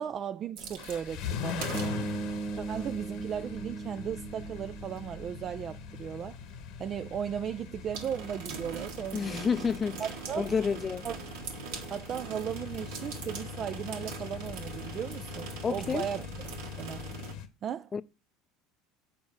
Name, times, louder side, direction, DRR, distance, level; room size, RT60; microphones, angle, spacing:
voice 1, 0.0-6.4 6.8-9.5 10.0-10.5 11.0-11.2 11.9-16.2 16.6-17.0 17.6-17.9, right 8 dB, 45° right, 0.4 m, -36 dB
sound 1, 0.6-17.3, right 5 dB, 75° right, 1.5 m, -44 dB
sound 2, 0.8-17.5, left 8 dB, 65° left, 1.1 m, -42 dB
sound 3, 1.7-5.9, right 4 dB, 10° right, 1.3 m, -38 dB
voice 2, 9.1-10.0 10.4-11.1 15.6-16.1 17.9-18.0, left 6 dB, 30° left, 0.5 m, -29 dB
7.3 x 5.2 x 6.3 m
hypercardioid pair, 90°, 0 cm